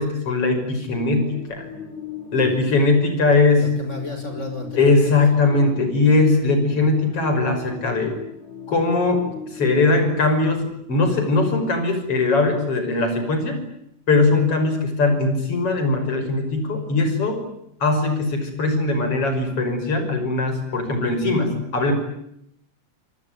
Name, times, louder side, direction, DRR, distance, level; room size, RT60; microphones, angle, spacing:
voice 1, 0.0-1.6 2.3-3.7 4.8-8.1 8.7-9.3 9.5-13.6 14.1-17.4 17.8-21.9, left 3 dB, 45° left, 7 dB, 6.7 m, -20 dB
sound 1, 0.9-10.0, left 8 dB, 65° left, 5.5 m, -37 dB
voice 2, 2.3-2.6 3.5-5.2, left 1 dB, 20° left, 6 dB, 6.4 m, -32 dB
28.5 x 19.5 x 9.6 m, 0.76 s
omnidirectional pair, 3.6 m